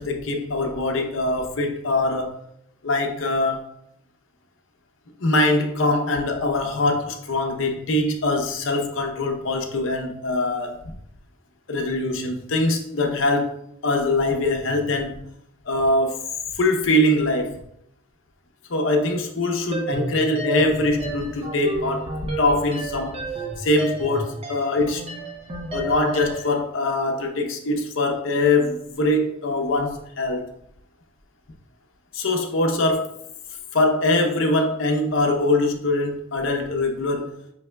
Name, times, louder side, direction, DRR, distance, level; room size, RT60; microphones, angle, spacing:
voice 1, 0.0-2.3 2.8-3.6 5.2-10.8 11.7-13.5 13.8-15.2 15.7-16.2 16.5-17.6 18.7-23.2 23.6-25.0 25.7-30.4 32.1-33.1 33.7-37.3, left 2 dB, 85° left, 0.7 m, -23 dB
sound 1, 19.7-26.6, right 1 dB, 30° right, 0.6 m, -32 dB
5.4 x 3.3 x 2.2 m
head